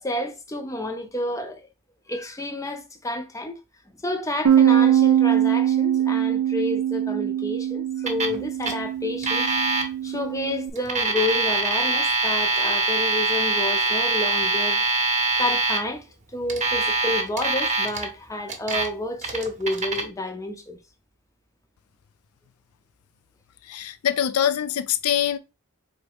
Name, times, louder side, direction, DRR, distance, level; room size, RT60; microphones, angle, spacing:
voice 1, 0.0-1.7 2.1-3.6 4.0-9.5 10.0-14.8 15.4-16.1 16.3-20.8, left 2 dB, 15° left, 0.6 m, -30 dB
Bass guitar, 4.5-10.7, right 10 dB, 85° right, 0.5 m, -22 dB
Alarm, 8.1-8.4 8.6-8.7 9.2-9.8 10.8-15.8 16.5-18.0 18.5-18.9 19.2-20.0, right 3 dB, 30° right, 0.8 m, -23 dB
voice 2, 23.6-25.4, left 10 dB, 75° left, 0.4 m, -24 dB
3.9 x 3.4 x 3.5 m
head